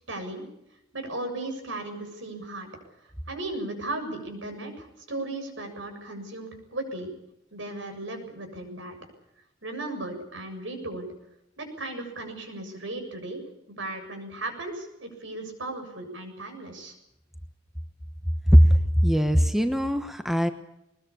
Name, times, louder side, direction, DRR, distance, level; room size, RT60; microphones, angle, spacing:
voice 1, 0.1-0.5 0.9-2.7 3.0-7.1 7.5-9.0 9.6-11.1 11.6-13.4 13.7-16.9, right 2 dB, 75° right, 5 dB, 7.3 m, -36 dB
voice 2, 18.5-20.5, equal, ahead, 8 dB, 1.1 m, -19 dB
21.5 x 20.5 x 8.6 m, 0.85 s
head